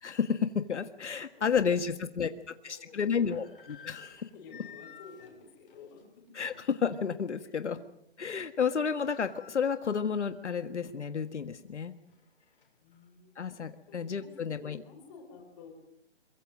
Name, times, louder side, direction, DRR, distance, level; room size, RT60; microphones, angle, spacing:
voice 1, 0.0-2.3 2.6-4.1 6.4-7.8 8.2-11.9 13.4-14.8, left 6 dB, 80° left, 9 dB, 1.7 m, -31 dB
voice 2, 1.3-2.3 2.7-3.5 4.0-6.3 7.4-7.5 12.8-15.7, left 4 dB, 20° left, 1 dB, 4.7 m, -53 dB
sound 1, 1.9-2.0 2.9-6.7 7.2-7.3 7.7-8.1 8.3-8.4 8.6-10.6 11.0-11.1 11.7-13.0, left 7 dB, 50° left, 4.3 m, -54 dB
23.5 x 23.5 x 6.5 m, 0.76 s
hypercardioid pair, 175°, 34 cm